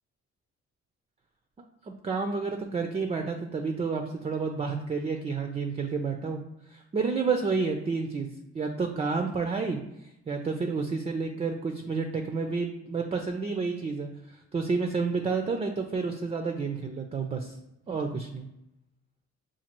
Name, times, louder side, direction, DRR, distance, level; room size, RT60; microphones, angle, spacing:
voice 1, 1.8-6.4 6.7-8.3 8.5-9.8 10.3-17.5 17.9-18.5, right 4 dB, 20° right, 4 dB, 0.4 m, -30 dB
5.8 x 2.4 x 2.9 m, 0.85 s
cardioid pair, 90°, 30 cm